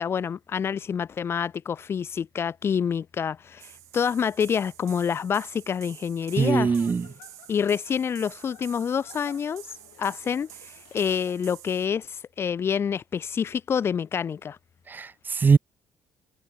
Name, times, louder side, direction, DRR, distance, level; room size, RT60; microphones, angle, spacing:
voice 1, 0.0-6.7 7.5-9.7 10.0-14.6, left 7 dB, 50° left, 2.1 m, -27 dB
sound 1, 3.6-11.9, right 18 dB, 80° right, 7.0 m, -48 dB
Giggle / Chuckle chortle, 6.2-11.7, left 32 dB, 85° left, 4.6 m, -53 dB
voice 2, 6.4-7.1 14.9-15.6, right 5 dB, 35° right, 0.9 m, -21 dB
hypercardioid pair, 55°, 5 cm